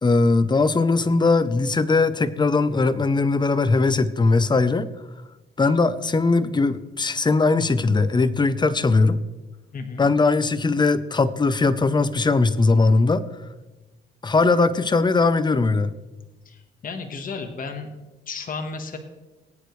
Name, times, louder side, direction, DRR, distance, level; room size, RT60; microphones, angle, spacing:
voice 1, 0.0-4.9 5.6-9.2 10.0-13.2 14.2-15.9, left 3 dB, 20° left, 14 dB, 0.7 m, -20 dB
voice 2, 9.7-10.1 16.4-17.9 18.3-19.0, left 4 dB, 45° left, 6 dB, 1.4 m, -33 dB
18.0 x 9.1 x 3.2 m, 1.1 s
cardioid pair, 90°, 20 cm